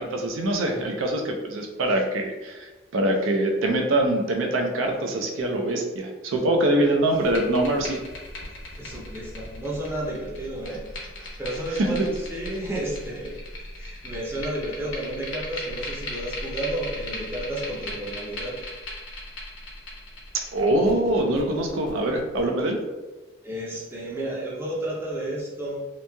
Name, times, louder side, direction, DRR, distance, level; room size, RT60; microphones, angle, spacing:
voice 1, 0.0-8.0 11.8-12.1 20.5-22.8, right 1 dB, 75° right, 2 dB, 0.4 m, -24 dB
sound 1, 7.1-22.4, left 1 dB, 70° left, 0.7 m, -38 dB
voice 2, 8.7-13.5 13.8-18.7 23.4-25.9, right 1 dB, 10° right, -5 dB, 0.5 m, -32 dB
2.9 x 2.6 x 2.2 m, 1.2 s
head